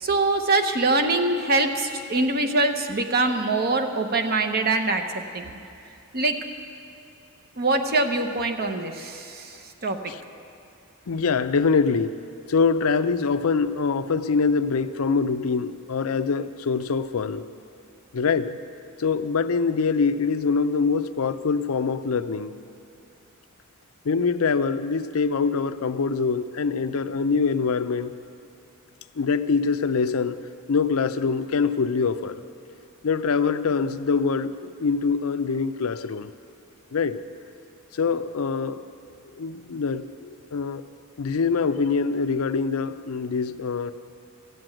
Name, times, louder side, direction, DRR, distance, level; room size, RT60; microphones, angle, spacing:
voice 1, 0.0-5.5 6.1-6.4 7.6-9.5 9.8-10.0, right 2 dB, 45° right, 6 dB, 0.9 m, -23 dB
voice 2, 11.1-12.1 12.5-17.4 18.1-18.6 19.0-22.6 24.1-28.1 29.2-30.4 30.7-32.4 33.0-36.3 36.9-37.2 38.0-38.8 39.4-40.8 41.2-43.9, left 5 dB, 75° left, 11 dB, 0.5 m, -24 dB
15.0 x 7.8 x 9.0 m, 2.6 s
head